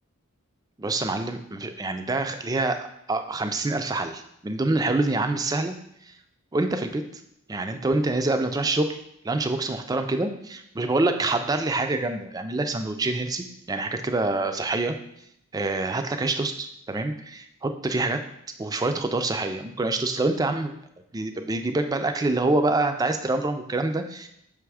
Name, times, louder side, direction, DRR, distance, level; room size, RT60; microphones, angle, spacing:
voice 1, 0.8-5.7 6.0-6.1 6.5-7.0 7.5-9.0 9.2-15.0 15.5-18.2 18.6-20.7 21.1-24.3, right 2 dB, 15° right, 7 dB, 0.3 m, -26 dB
6.0 x 3.5 x 4.7 m, 0.76 s
head